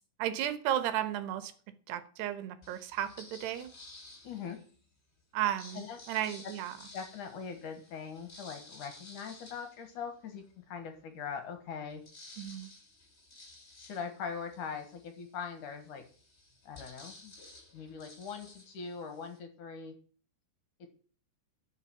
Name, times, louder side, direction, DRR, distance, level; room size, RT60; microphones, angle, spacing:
voice 1, 0.2-1.5 1.9-3.7 5.3-5.8 6.1-6.8 12.4-12.7, right 11 dB, 85° right, 11 dB, 3.2 m, -33 dB
sound 1, 2.6-4.8 5.4-10.6 11.0-11.1 11.4-19.4, left 2 dB, 20° left, 2.3 m, -54 dB
voice 2, 4.2-4.6 5.7-6.0 6.4-6.5 6.9-12.0 13.8-16.0 16.7-17.3 17.7-19.9 20.8-20.9, left 6 dB, 60° left, 7 dB, 2.5 m, -41 dB
11.0 x 6.1 x 9.0 m, 0.43 s
omnidirectional pair, 4.7 m